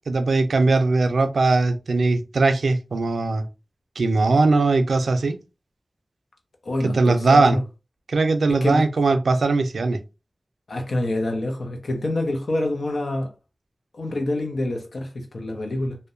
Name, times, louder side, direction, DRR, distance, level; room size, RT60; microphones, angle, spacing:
voice 1, 0.1-3.5 4.0-5.4 6.8-7.6 8.1-10.0, right 3 dB, 85° right, 0.3 m, -20 dB
voice 2, 6.6-7.6 8.6-8.8 10.7-13.3 13.9-16.0, left 1 dB, 80° left, 0.7 m, -26 dB
2.7 x 2.1 x 2.4 m
cardioid pair, 45°, 0 cm